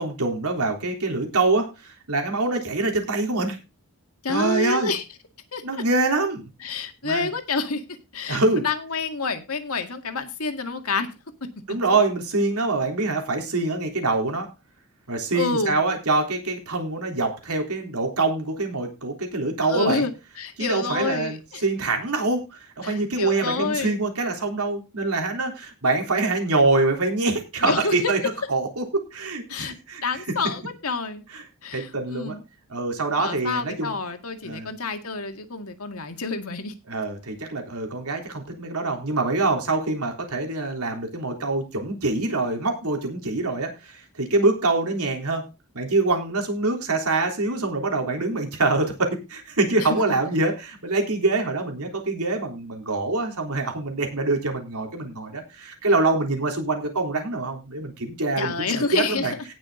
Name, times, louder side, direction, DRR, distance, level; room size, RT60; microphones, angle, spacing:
voice 1, 0.0-3.6 4.3-4.9 5.6-6.5 7.0-7.3 8.3-8.7 11.7-14.5 15.1-20.1 20.6-30.0 31.3-31.4 31.7-32.4 32.7-33.9 34.4-34.7 36.9-45.5 45.7-59.3, right 3 dB, 80° right, 3 dB, 3.5 m, -25 dB
voice 2, 4.2-5.0 5.5-5.8 6.6-7.8 8.1-11.1 11.9-12.0 15.3-15.8 19.6-21.6 22.8-24.0 27.6-28.0 29.5-29.7 30.0-31.2 31.6-32.4 33.2-36.7 49.8-49.9 58.4-59.3, left 4 dB, 70° left, 6 dB, 2.0 m, -28 dB
18.0 x 6.2 x 3.8 m, 0.28 s
head